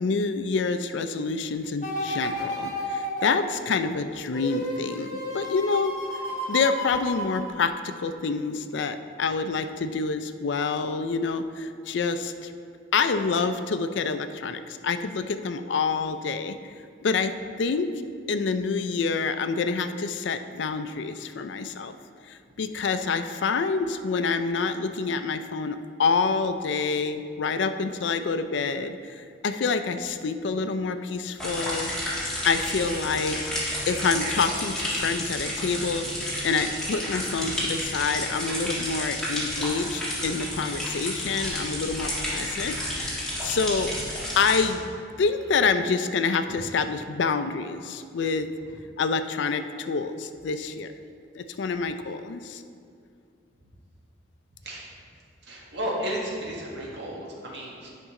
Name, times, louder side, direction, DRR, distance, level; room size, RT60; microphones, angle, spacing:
voice 1, 0.0-6.0 6.5-12.5 12.9-16.6 17.0-17.3 17.6-17.9 18.3-21.9 22.3-31.9 32.4-33.4 33.9-43.9 44.4-44.9 45.2-48.5 49.0-50.9 51.4-52.6, left 4 dB, 70° left, 10 dB, 0.4 m, -27 dB
sound 1, 1.8-8.0 8.5-8.6, equal, 40° left, 1.2 m, -32 dB
sound 2, 31.4-44.6, left 1 dB, 5° left, 1.6 m, -31 dB
voice 2, 55.4-57.9, equal, 65° right, -3 dB, 1.6 m, -33 dB
9.8 x 5.3 x 3.7 m, 2.3 s
head